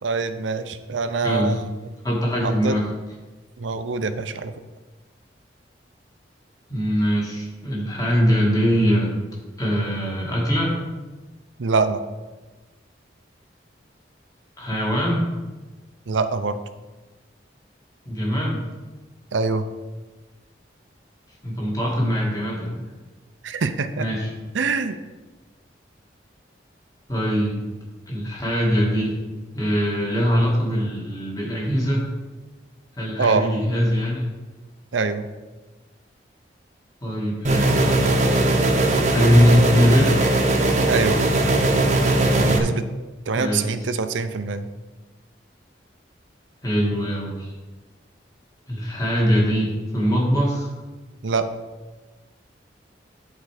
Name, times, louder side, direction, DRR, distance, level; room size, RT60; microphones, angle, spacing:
voice 1, 0.0-1.6 2.4-2.8 3.6-4.5 11.6-12.0 16.1-16.6 19.3-19.7 23.4-24.1 24.5-25.0 33.2-33.5 34.9-35.3 40.9-41.3 42.4-42.8 43.3-44.7 51.2-51.5, right 4 dB, 90° right, 10 dB, 0.6 m, -24 dB
voice 2, 1.2-1.6 2.0-2.8 6.7-9.1 9.6-10.8 14.6-15.3 18.1-18.6 21.4-22.8 24.0-24.3 27.1-27.6 28.1-29.1 29.5-32.0 33.0-34.3 37.0-38.0 39.1-40.1 43.3-43.7 46.6-47.5 48.7-50.7, equal, 20° left, -3 dB, 1.9 m, -22 dB
sound 1, 37.4-42.6, right 2 dB, 40° right, 0.9 m, -19 dB
10.5 x 4.5 x 4.9 m, 1.2 s
head